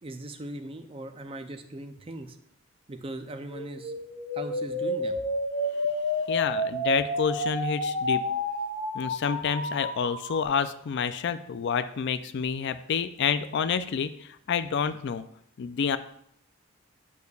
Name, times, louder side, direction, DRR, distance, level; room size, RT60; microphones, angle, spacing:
voice 1, 0.0-2.4 2.9-3.9 4.3-5.2, right 1 dB, 25° right, 7 dB, 0.5 m, -39 dB
sound 1, 3.5-10.5, left 1 dB, 70° left, 1.6 m, -30 dB
voice 2, 6.3-8.2 8.9-15.2 15.6-16.0, left 6 dB, 55° left, 12 dB, 0.4 m, -28 dB
8.4 x 6.7 x 2.3 m, 0.69 s
head